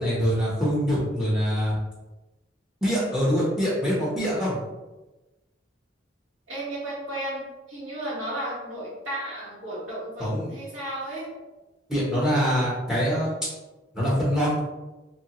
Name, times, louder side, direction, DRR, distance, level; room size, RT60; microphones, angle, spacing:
voice 1, 0.0-1.8 2.8-4.6 10.2-10.5 11.9-13.3 13.9-14.6, equal, 5° right, -7 dB, 0.8 m, -24 dB
voice 2, 6.5-11.3, right 1 dB, 85° right, -7 dB, 1.3 m, -34 dB
2.9 x 2.2 x 2.8 m, 1.1 s
head